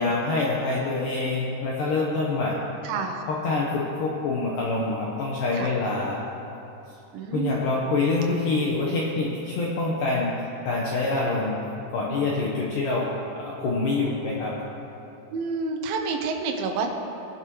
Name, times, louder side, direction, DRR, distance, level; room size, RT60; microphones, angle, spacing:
voice 1, 0.0-2.6 3.3-6.2 7.3-10.4 10.7-11.6 11.9-13.1 13.4-14.5, left 3 dB, 70° left, -4 dB, 2.2 m, -26 dB
voice 2, 2.8-3.2 5.5-5.7 7.1-7.6 15.3-16.9, right 4 dB, 70° right, 3 dB, 2.6 m, -29 dB
21.0 x 10.5 x 3.1 m, 2.9 s
omnidirectional pair, 5.0 m